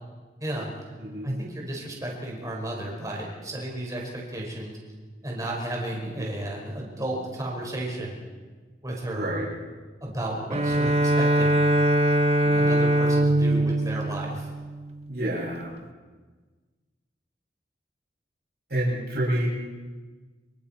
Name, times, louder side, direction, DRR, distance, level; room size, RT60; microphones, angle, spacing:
voice 1, 0.4-0.7 1.2-4.8 5.2-8.2 8.8-9.4 10.0-11.6 12.6-14.5, right 1 dB, 20° right, -2 dB, 5.2 m, -33 dB
voice 2, 1.0-1.4 6.0-6.3 9.1-9.5 15.1-15.7 18.7-19.5, right 1 dB, 60° right, -5 dB, 7.3 m, -29 dB
Bowed string instrument, 10.5-15.1, right 1 dB, 35° right, 0.8 m, -22 dB
26.5 x 24.0 x 4.5 m, 1.4 s
head